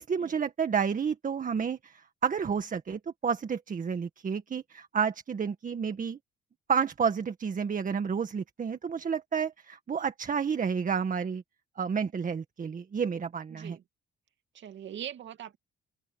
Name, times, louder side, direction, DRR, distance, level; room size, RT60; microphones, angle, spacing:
voice 1, 0.0-6.2 6.7-11.4 11.8-13.8, right 6 dB, 40° right, 1.8 m, -30 dB
voice 2, 13.5-13.8 14.5-15.6, right 10 dB, 65° right, 2.4 m, -41 dB
open air
cardioid pair, 90°, 20 cm